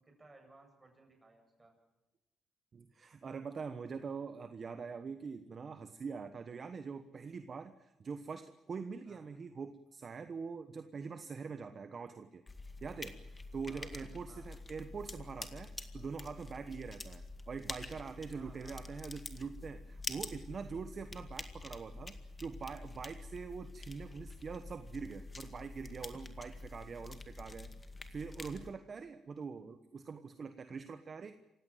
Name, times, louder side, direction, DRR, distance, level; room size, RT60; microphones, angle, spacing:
voice 1, 0.0-1.7 9.0-9.2 13.7-14.5 18.3-19.0 28.6-28.7 30.3-30.4, right 2 dB, 20° right, 3 dB, 8.0 m, -60 dB
voice 2, 2.7-12.4 12.8-27.7 28.1-31.4, right 5 dB, 45° right, 10 dB, 1.1 m, -44 dB
sound 1, 12.5-28.7, left 3 dB, 25° left, 2.1 m, -47 dB
28.0 x 16.0 x 9.2 m, 1.0 s
cardioid pair, 90°, 0 cm